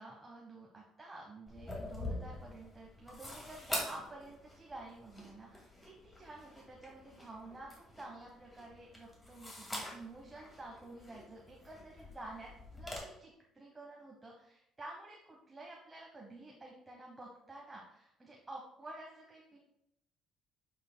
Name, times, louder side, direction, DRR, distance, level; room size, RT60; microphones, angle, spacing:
voice 1, 0.0-19.6, right 2 dB, 15° right, -2 dB, 1.2 m, -50 dB
sound 1, 1.5-13.0, left 1 dB, 15° left, 2.1 m, -46 dB
8.7 x 6.5 x 2.3 m, 0.82 s
cardioid pair, 130°, 0 cm